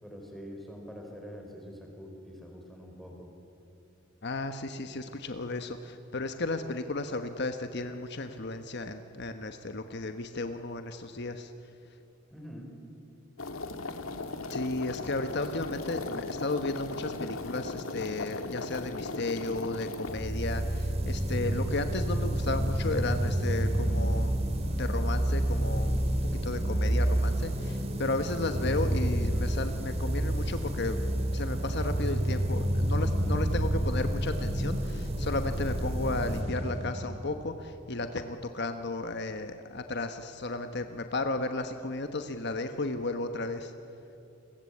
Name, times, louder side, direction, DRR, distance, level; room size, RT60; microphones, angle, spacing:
voice 1, 0.0-3.3 12.3-12.7, equal, ahead, 1 dB, 5.0 m, -45 dB
voice 2, 4.2-11.5 14.5-24.3 24.7-26.1 26.4-31.0 31.3-43.7, left 2 dB, 55° left, 7 dB, 1.2 m, -34 dB
sound 1, 13.4-20.2, left 3 dB, 90° left, 1.9 m, -37 dB
sound 2, 20.1-37.6, right 1 dB, 30° right, 2.9 m, -29 dB
29.0 x 23.0 x 8.6 m, 2.9 s
head